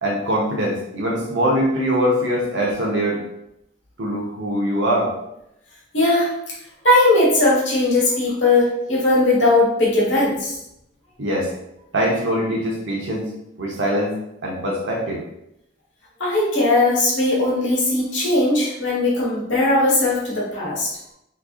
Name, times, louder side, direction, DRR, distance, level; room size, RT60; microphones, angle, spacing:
voice 1, 0.0-3.2 4.0-5.1 11.2-11.5 11.9-13.3 13.6-14.1 14.4-15.2, equal, 75° right, -2 dB, 1.0 m, -22 dB
voice 2, 5.9-6.3 6.8-10.6 16.2-20.9, left 2 dB, 70° left, -5 dB, 1.3 m, -18 dB
3.7 x 3.3 x 2.4 m, 0.81 s
head